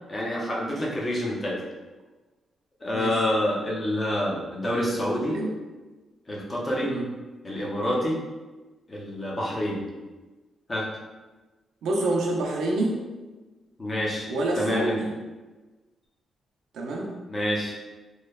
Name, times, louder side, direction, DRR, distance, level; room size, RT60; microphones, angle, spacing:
voice 1, 0.1-1.6 2.8-5.4 6.3-6.9 7.4-8.2 8.9-9.8 10.7-10.9 13.8-14.3 14.6-15.0 17.3-17.8, left 1 dB, 20° left, -4 dB, 0.5 m, -27 dB
voice 2, 11.8-13.1 14.3-15.1 16.7-17.1, right 2 dB, 80° right, 0 dB, 0.4 m, -27 dB
3.0 x 2.1 x 2.2 m, 1.2 s
wide cardioid pair, 155°, 0 cm